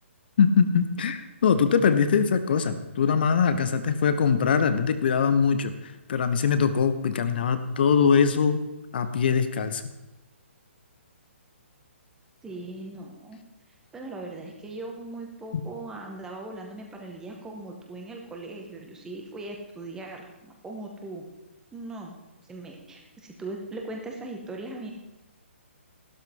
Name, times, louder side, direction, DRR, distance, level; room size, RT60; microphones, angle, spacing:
voice 1, 0.4-8.6 8.9-9.8, left 6 dB, 50° left, 11 dB, 1.2 m, -22 dB
voice 2, 12.4-13.4 13.9-21.3 21.7-22.2 22.5-24.9, right 2 dB, 10° right, 1 dB, 1.9 m, -39 dB
14.5 x 12.5 x 3.9 m, 1.0 s
figure-of-eight pair, 130°, 7 cm